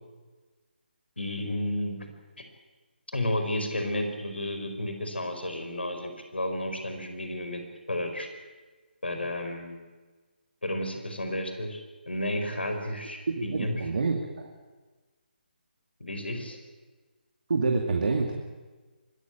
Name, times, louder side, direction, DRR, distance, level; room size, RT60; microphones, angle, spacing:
voice 1, 1.2-2.0 2.4-2.5 3.1-7.6 7.9-8.3 9.0-9.8 10.6-13.8 16.0-16.6, left 1 dB, 75° left, 6 dB, 4.8 m, -32 dB
voice 2, 13.3-14.5 17.5-18.3, right 4 dB, 55° right, 3 dB, 2.3 m, -27 dB
24.5 x 14.5 x 9.1 m, 1.3 s
figure-of-eight pair, 150°, 6 cm